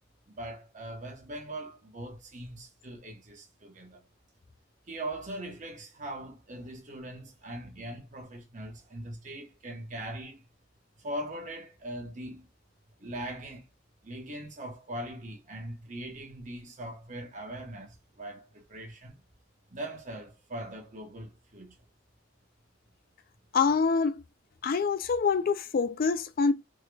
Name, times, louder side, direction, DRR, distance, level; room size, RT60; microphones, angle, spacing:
voice 1, 0.3-4.0 4.9-10.4 11.0-12.5 13.0-13.6 14.0-19.1 19.7-21.7, right 1 dB, 40° right, 1.1 m, -41 dB
voice 2, 23.5-24.2 24.6-26.5, left 5 dB, 45° left, 0.4 m, -25 dB
3.7 x 2.2 x 3.3 m
head